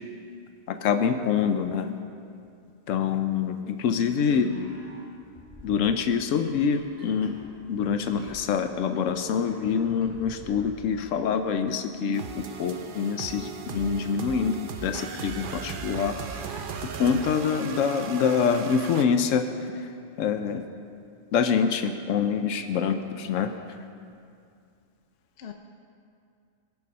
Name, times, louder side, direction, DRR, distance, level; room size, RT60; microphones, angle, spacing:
voice 1, 0.7-1.9 2.9-4.5 5.6-7.4 7.7-16.6 17.0-19.5 20.2-20.6 21.3-23.5, left 6 dB, 85° left, 8 dB, 1.0 m, -25 dB
sound 1, 4.2-11.6, equal, 30° right, 2.5 m, -48 dB
voice 2, 4.3-4.8 25.4-25.5, left 8 dB, 60° left, 5 dB, 0.9 m, -37 dB
sound 2, 12.1-19.1, right 5 dB, 50° right, 0.7 m, -37 dB
20.0 x 7.1 x 5.4 m, 2.4 s
omnidirectional pair, 1.3 m